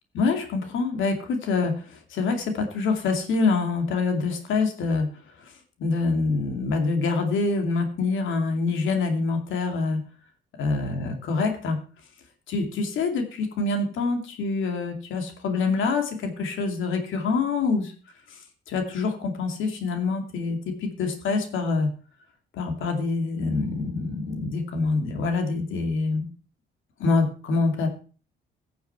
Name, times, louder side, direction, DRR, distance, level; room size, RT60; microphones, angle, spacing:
voice 1, 0.1-1.7 2.1-5.1 5.8-10.0 10.6-11.8 12.5-17.9 18.7-21.9 22.5-26.3 27.0-27.9, left 4 dB, 75° left, 5 dB, 2.5 m, -25 dB
16.0 x 7.0 x 4.5 m, 0.38 s
cardioid pair, 90°, 20 cm